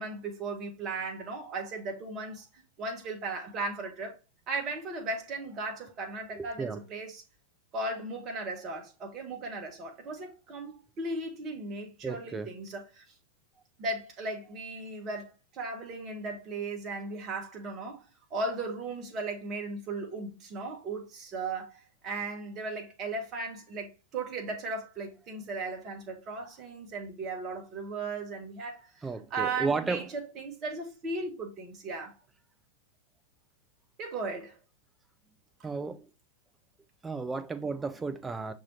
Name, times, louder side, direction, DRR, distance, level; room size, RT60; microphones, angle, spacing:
voice 1, 0.0-4.2 4.5-7.2 7.7-13.0 13.8-18.0 18.3-28.9 29.3-32.1 34.0-34.6 35.6-35.7, right 3 dB, 35° right, 1.3 m, -36 dB
voice 2, 6.4-6.8 12.0-12.5 29.0-30.1 35.6-36.1 37.0-38.5, right 4 dB, 10° right, 0.5 m, -33 dB
6.0 x 2.9 x 2.8 m
figure-of-eight pair, 95°, 0 cm